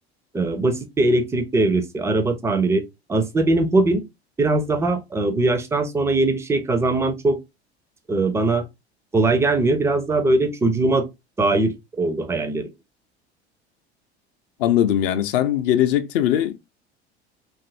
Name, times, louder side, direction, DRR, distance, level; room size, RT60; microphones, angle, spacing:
voice 1, 0.3-2.8 3.1-4.0 4.4-7.4 8.1-8.6 9.1-11.1 11.4-12.7, right 2 dB, 10° right, 0.4 m, -21 dB
voice 2, 14.6-16.5, left 11 dB, 55° left, 0.5 m, -20 dB
2.6 x 2.4 x 2.4 m
figure-of-eight pair, 70°, 33 cm